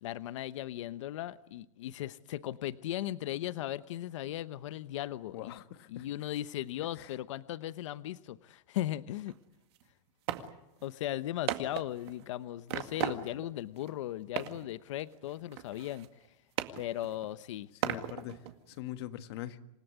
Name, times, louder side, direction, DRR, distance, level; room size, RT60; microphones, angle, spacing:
voice 1, 0.0-5.5 5.9-9.3 10.8-16.1 16.8-17.7, left 13 dB, 70° left, 14 dB, 0.9 m, -37 dB
voice 2, 5.3-6.1 6.9-7.1 17.8-19.6, left 13 dB, 55° left, 10 dB, 1.5 m, -43 dB
sound 1, 9.3-9.4 9.8-9.9 10.3-10.5 10.8-10.9 11.5-12.3 12.7-13.5 13.8-13.9 14.4-14.7 15.0-16.3 16.6-17.3 17.8-18.8, right 12 dB, 55° right, 2.0 m, -37 dB
27.5 x 17.5 x 9.6 m, 0.89 s
supercardioid pair, 165°, 17 cm